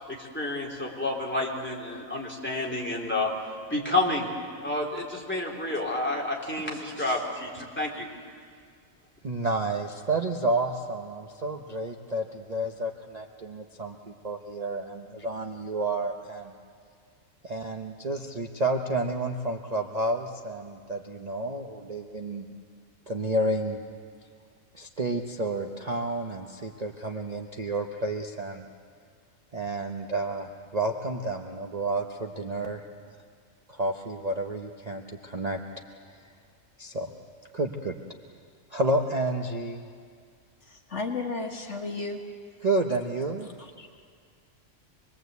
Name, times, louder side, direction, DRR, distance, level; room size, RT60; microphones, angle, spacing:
voice 1, 0.1-3.3 3.7-4.3 4.6-8.1, left 2 dB, 10° left, -2 dB, 3.4 m, -29 dB
voice 2, 9.2-16.5 17.4-22.5 23.1-23.8 24.7-28.7 29.5-32.9 33.7-35.6 36.8-37.1 37.5-38.0 38.7-39.9 42.6-43.5 43.8-43.9, right 2 dB, 30° right, 2 dB, 1.0 m, -30 dB
voice 3, 40.7-42.2, left 3 dB, 55° left, 2 dB, 2.0 m, -33 dB
26.0 x 21.0 x 8.2 m, 2.1 s
omnidirectional pair, 1.4 m